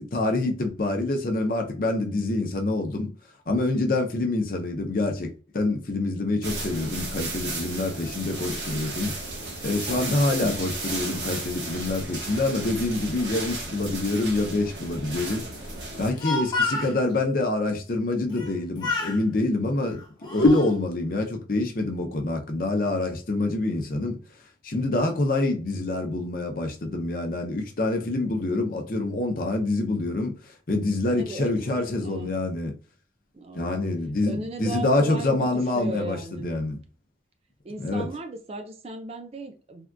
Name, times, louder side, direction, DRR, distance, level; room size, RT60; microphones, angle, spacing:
voice 1, 0.0-3.1 3.5-9.2 9.6-15.5 16.0-24.2 24.6-32.7 33.5-36.8 37.8-38.1, left 2 dB, 50° left, 0.6 m, -26 dB
sound 1, 6.4-16.1, right 2 dB, 85° right, 1.2 m, -34 dB
Speech, 15.9-17.0 18.3-18.6 18.8-19.2 19.9-20.7, left 3 dB, 25° left, 0.8 m, -29 dB
voice 2, 31.2-32.3 33.3-33.7 34.2-36.5 37.6-39.9, right 2 dB, 35° right, 0.4 m, -37 dB
3.5 x 2.4 x 2.2 m
head